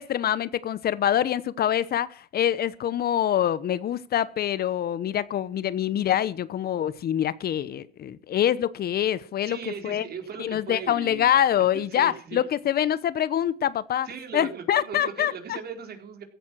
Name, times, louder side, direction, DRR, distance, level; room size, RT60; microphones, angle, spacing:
voice 1, 0.0-9.6 9.8-10.0 10.4-14.1 14.3-15.6, left 10 dB, 50° left, 0.9 m, -25 dB
voice 2, 9.4-11.4 11.7-12.4 14.0-16.2, right 6 dB, 50° right, 4.3 m, -38 dB
16.0 x 11.5 x 6.2 m
supercardioid pair, 85°, 21 cm